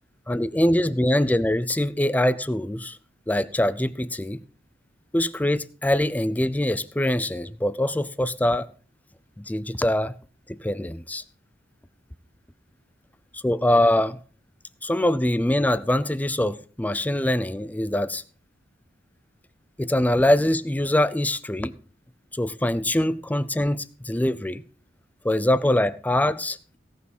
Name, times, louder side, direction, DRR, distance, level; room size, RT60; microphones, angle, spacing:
voice 1, 0.3-3.0 3.3-4.4 5.1-8.7 9.4-10.1 10.5-11.2 13.3-14.2 14.8-18.2 19.8-21.7 22.3-24.6 25.2-26.8, left 1 dB, 10° left, 0.5 m, -23 dB
17.0 x 6.2 x 5.5 m
head